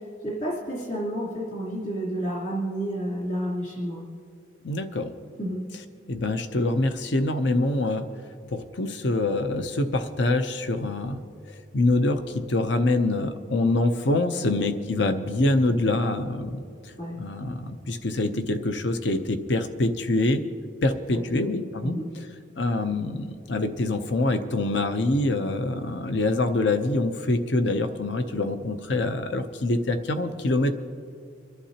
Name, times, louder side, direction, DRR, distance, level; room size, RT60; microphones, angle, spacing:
voice 1, 0.2-4.0 5.4-5.6 14.4-14.5 17.0-17.2 21.1-21.4 21.8-22.1, right 1 dB, 40° left, -6 dB, 3.2 m, -30 dB
voice 2, 4.6-5.1 5.7-5.8 6.1-8.0 8.5-11.2 11.5-16.9 17.2-20.4 20.8-22.3 22.6-30.7, left 2 dB, 70° left, 9 dB, 0.7 m, -25 dB
26.0 x 11.5 x 2.9 m, 2.3 s
head